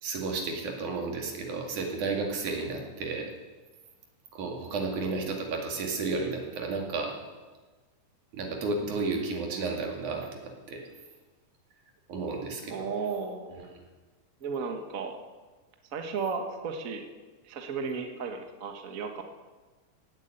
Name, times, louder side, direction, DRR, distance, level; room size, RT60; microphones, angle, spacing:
voice 1, 0.0-3.3 4.3-7.2 8.3-10.8 12.1-12.9, right 3 dB, 75° right, 1 dB, 3.8 m, -32 dB
voice 2, 12.7-13.8 14.4-15.2 15.9-17.1 17.4-19.2, right 5 dB, 45° right, 5 dB, 1.1 m, -34 dB
16.5 x 8.4 x 9.0 m, 1.3 s
omnidirectional pair, 3.5 m